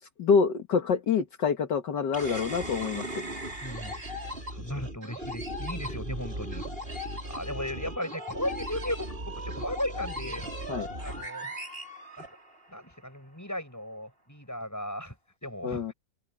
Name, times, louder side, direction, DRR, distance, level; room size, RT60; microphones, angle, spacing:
voice 1, 0.2-3.2 10.7-10.9 15.6-15.9, left 6 dB, 70° left, 2.1 m, -26 dB
sound 1, 2.1-12.8, equal, 30° right, 5.9 m, -37 dB
voice 2, 3.6-3.9 4.2-10.5 11.0-11.5 12.2-12.3 12.7-15.1 15.4-15.9, left 1 dB, 10° left, 8.0 m, -36 dB
open air
omnidirectional pair, 2.0 m